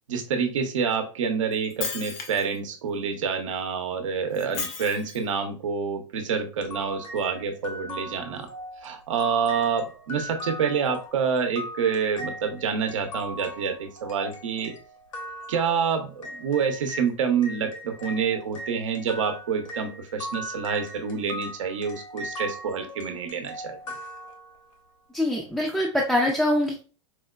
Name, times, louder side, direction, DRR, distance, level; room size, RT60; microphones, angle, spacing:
voice 1, 0.1-8.5 8.8-14.7 15.5-23.8, right 6 dB, 75° right, 5 dB, 0.7 m, -27 dB
Shatter, 1.5-2.6 4.3-5.3, left 5 dB, 45° left, 0.7 m, -34 dB
sound 1, 6.6-17.1 17.4-24.8, equal, 85° left, 0.9 m, -39 dB
voice 2, 25.1-26.8, left 1 dB, 5° left, -3 dB, 0.4 m, -24 dB
4.4 x 2.1 x 2.3 m, 0.36 s
hypercardioid pair, 110°, 16 cm